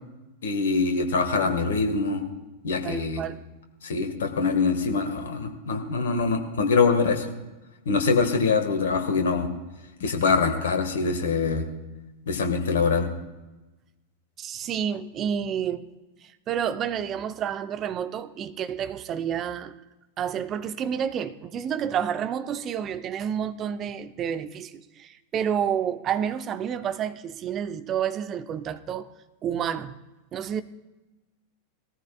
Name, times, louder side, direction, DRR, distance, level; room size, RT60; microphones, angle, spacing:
voice 1, 0.4-2.2 2.6-3.2 3.8-7.3 7.8-9.5 10.0-11.7 12.3-13.1, left 4 dB, 60° left, 1.6 m, -24 dB
voice 2, 2.8-3.4 14.4-15.9 16.2-19.7 20.2-29.1 29.4-30.0 30.3-30.6, right 8 dB, 30° right, 0.6 m, -29 dB
19.5 x 14.0 x 2.4 m
figure-of-eight pair, 90°, 0 cm